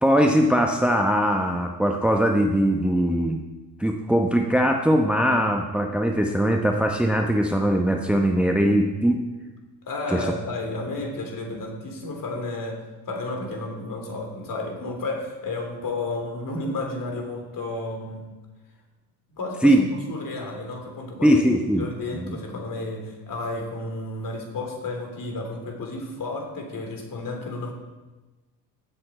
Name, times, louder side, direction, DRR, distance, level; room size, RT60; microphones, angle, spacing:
voice 1, 0.0-3.4 3.8-9.2 10.1-10.3 19.6-19.8 21.2-21.9 22.2-22.4, equal, ahead, 3 dB, 1.0 m, -21 dB
voice 2, 9.8-18.3 19.4-21.4 21.8-27.7, left 2 dB, 40° left, 3 dB, 3.4 m, -32 dB
16.0 x 7.8 x 4.4 m, 1.2 s
hypercardioid pair, 65°, 50 cm